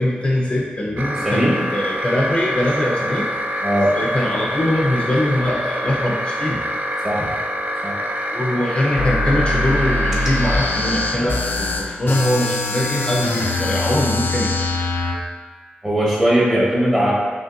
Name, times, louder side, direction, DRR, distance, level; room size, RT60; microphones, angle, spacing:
voice 1, 0.0-3.3 3.9-6.6 7.2-7.3 8.3-14.7, left 1 dB, 30° left, -3 dB, 0.5 m, -22 dB
sound 1, 1.0-11.2, equal, 50° right, 0.4 m, -26 dB
voice 2, 1.2-1.6 3.6-3.9 7.0-7.3 7.8-8.0 15.8-17.1, equal, 15° right, -6 dB, 1.1 m, -18 dB
sound 2, 9.0-15.2, left 2 dB, 90° left, 0.4 m, -22 dB
5.2 x 3.0 x 2.5 m, 1.4 s
wide cardioid pair, 120°, 3 cm